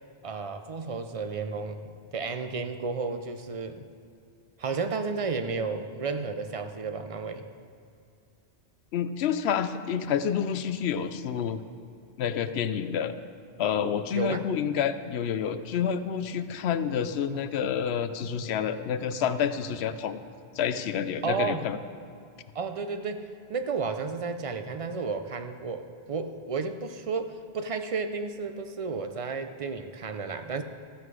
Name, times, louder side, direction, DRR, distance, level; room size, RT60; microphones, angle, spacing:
voice 1, 0.2-3.8 4.6-7.5 14.1-14.5 21.2-21.7 22.5-30.6, right 4 dB, 40° right, 8 dB, 0.5 m, -32 dB
voice 2, 8.9-11.6 12.2-13.2 13.6-20.2 20.6-21.8, left 8 dB, 75° left, 11 dB, 0.8 m, -28 dB
14.0 x 7.8 x 4.8 m, 2.4 s
omnidirectional pair, 1.1 m